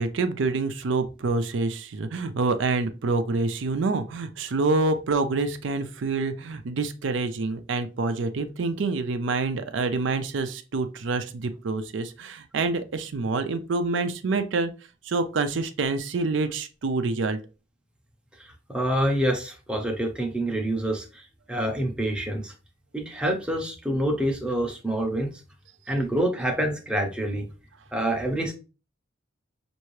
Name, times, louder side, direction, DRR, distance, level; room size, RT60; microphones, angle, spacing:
voice 1, 0.0-14.7 15.0-17.4, right 3 dB, 65° right, 9 dB, 0.4 m, -27 dB
voice 2, 18.7-21.2 21.5-22.5 22.9-25.3 25.9-27.5 27.9-28.5, right 1 dB, 5° right, 2 dB, 0.7 m, -26 dB
5.6 x 2.6 x 3.1 m, 0.33 s
head